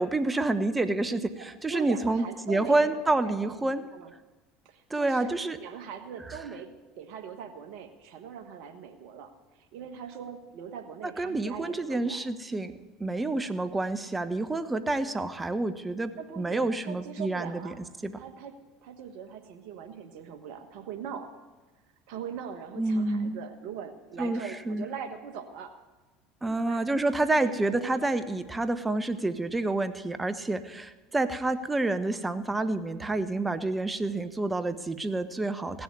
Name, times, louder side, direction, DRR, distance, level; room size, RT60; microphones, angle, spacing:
voice 1, 0.0-3.8 4.9-5.6 11.2-12.7 13.0-17.7 18.0-18.2 22.8-23.4 24.2-24.9 26.4-35.8, right 2 dB, 15° right, 11 dB, 1.1 m, -28 dB
voice 2, 1.4-4.1 4.6-9.3 9.7-12.2 16.2-17.8 18.2-21.3 22.1-25.8 26.4-26.9 27.4-28.1, right 7 dB, 65° right, 6 dB, 1.3 m, -41 dB
16.0 x 7.0 x 9.6 m, 1.2 s
hypercardioid pair, 80°, 0 cm